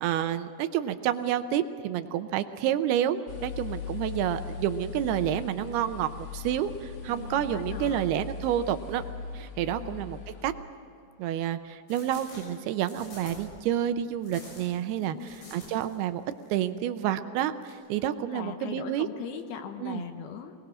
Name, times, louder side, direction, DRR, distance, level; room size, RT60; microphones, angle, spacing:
voice 1, 0.0-9.0 9.3-10.5 11.2-16.2 16.5-19.1 19.8-20.0, right 11 dB, 75° right, 10 dB, 2.5 m, -29 dB
sound 1, 3.3-10.5, left 7 dB, 55° left, 1.7 m, -39 dB
voice 2, 7.1-8.0 9.8-10.1 15.0-15.5 18.3-20.5, left 8 dB, 70° left, 6 dB, 2.8 m, -40 dB
sound 2, 11.9-13.6 14.2-16.0 16.3-16.5 17.6-17.7, left 2 dB, 90° left, 8.9 m, -47 dB
23.5 x 19.5 x 6.2 m, 2.6 s
omnidirectional pair, 5.0 m